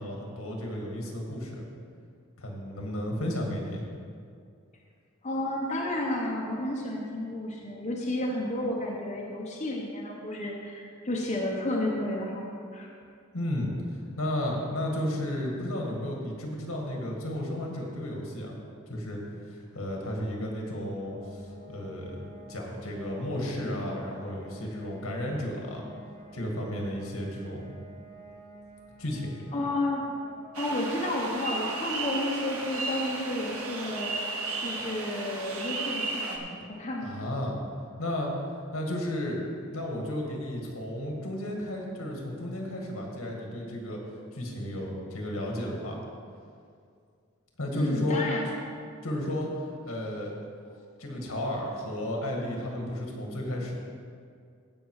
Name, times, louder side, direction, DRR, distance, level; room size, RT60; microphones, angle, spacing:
voice 1, 0.0-1.7 2.4-3.8 13.3-18.6 18.9-19.2 19.5-22.2 22.5-25.8 26.3-27.6 29.0-29.4 37.0-38.3 38.7-44.0 44.3-46.0 47.6-48.3 49.0-49.5 49.8-50.4 51.0-53.8, left 1 dB, 75° left, 0 dB, 2.0 m, -33 dB
voice 2, 5.2-12.4 12.7-12.9 29.5-30.0 30.6-37.1 47.7-48.5, left 1 dB, 30° left, -3 dB, 1.1 m, -31 dB
sound 1, 21.0-35.6, right 1 dB, 35° right, 2.3 m, -51 dB
sound 2, 30.5-36.4, right 3 dB, 85° right, 1.3 m, -34 dB
15.5 x 5.4 x 4.9 m, 2.3 s
head